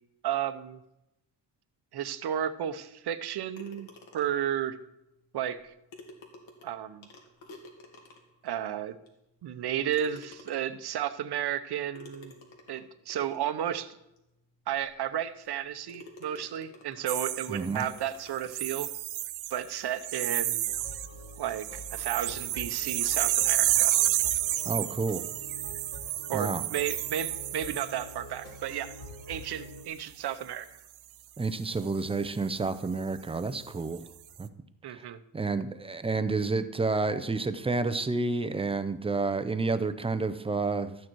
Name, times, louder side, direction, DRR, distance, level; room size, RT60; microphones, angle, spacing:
voice 1, 0.2-0.8 1.9-3.9 4.1-4.8 5.3-5.7 6.6-7.1 8.4-9.0 9.4-12.3 12.7-14.0 14.7-18.9 19.5-20.6 21.4-23.9 26.3-28.9 29.3-30.7 34.8-35.2, right 10 dB, 55° right, 11 dB, 0.8 m, -33 dB
sound 1, 3.6-4.5 5.6-5.7 5.9-8.5 9.1-9.2 9.9-10.9 12.0-13.5 14.2-14.3 14.8-14.9 15.4-15.6 15.9-17.2 17.7-18.9, left 2 dB, 85° left, 2.4 m, -51 dB
sound 2, 17.1-18.0 18.5-19.7 20.0-21.1 21.4-28.2 28.7-29.0, right 14 dB, 90° right, 0.7 m, -30 dB
voice 2, 17.5-17.8 24.7-25.2 26.3-26.6 31.4-34.0 34.4-34.5 34.9-35.0 35.3-41.0, right 3 dB, 15° right, 11 dB, 0.5 m, -30 dB
sound 3, 20.7-29.8, equal, 45° left, 2.4 m, -46 dB
13.0 x 9.0 x 4.6 m, 0.88 s
wide cardioid pair, 170°, 46 cm